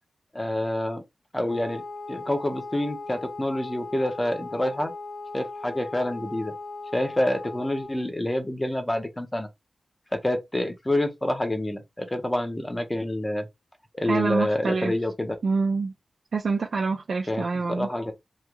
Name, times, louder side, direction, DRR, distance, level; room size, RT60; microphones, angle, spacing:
voice 1, 0.3-1.0 1.3-1.8 2.1-4.9 5.3-6.5 6.9-9.5 10.1-13.5 13.9-15.3 17.3-17.5 17.8-18.1, left 1 dB, 15° left, 0.5 m, -27 dB
Wind instrument woodwind instrument, 1.4-8.1, left 3 dB, 85° left, 1.0 m, -38 dB
voice 2, 14.1-14.9 15.4-15.9 16.3-17.9, right 4 dB, 70° right, 0.4 m, -26 dB
3.0 x 2.7 x 2.3 m
wide cardioid pair, 145°, 0 cm